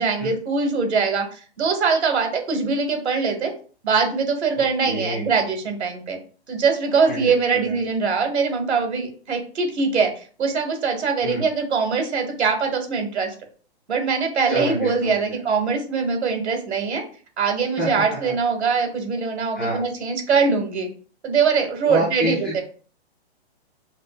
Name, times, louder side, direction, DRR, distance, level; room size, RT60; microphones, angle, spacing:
voice 1, 0.0-3.5 3.8-6.2 6.5-13.3 13.9-17.0 17.4-20.9 21.2-22.6, right 5 dB, 85° right, 4 dB, 1.4 m, -22 dB
voice 2, 4.8-5.4 7.1-7.9 11.2-11.4 14.5-15.4 17.8-18.3 19.6-19.8 21.8-22.6, equal, 10° left, -8 dB, 0.4 m, -28 dB
5.5 x 2.0 x 2.3 m, 0.40 s
hypercardioid pair, 170°, 33 cm